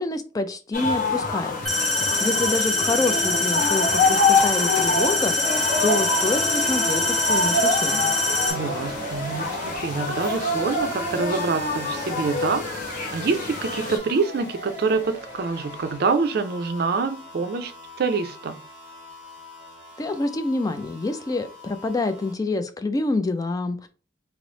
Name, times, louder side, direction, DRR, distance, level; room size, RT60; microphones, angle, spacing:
voice 1, 0.0-1.6 2.2-5.4 5.8-8.2 20.0-23.9, left 2 dB, 20° left, 0.3 m, -27 dB
sound 1, 0.7-14.0, left 3 dB, 50° left, 0.8 m, -26 dB
sound 2, 1.6-8.5, left 1 dB, 5° left, 1.1 m, -24 dB
sound 3, 5.4-22.3, left 1 dB, 65° left, 1.4 m, -37 dB
voice 2, 8.5-12.6 13.1-17.7 18.0-18.6, right 4 dB, 55° right, 0.4 m, -26 dB
3.1 x 2.0 x 3.8 m
head